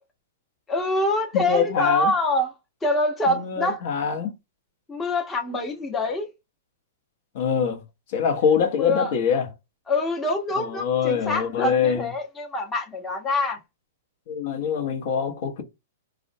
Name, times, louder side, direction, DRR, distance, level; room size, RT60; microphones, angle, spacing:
voice 1, 0.7-2.5 2.8-3.8 4.9-6.3 8.8-9.1 9.9-13.6, left 2 dB, 15° left, 0.7 m, -25 dB
voice 2, 1.3-2.1 3.3-4.3 7.3-7.8 8.1-9.5 10.6-12.1 14.3-15.6, left 7 dB, 60° left, 0.7 m, -24 dB
2.4 x 2.0 x 2.6 m
hypercardioid pair, 125°, 0 cm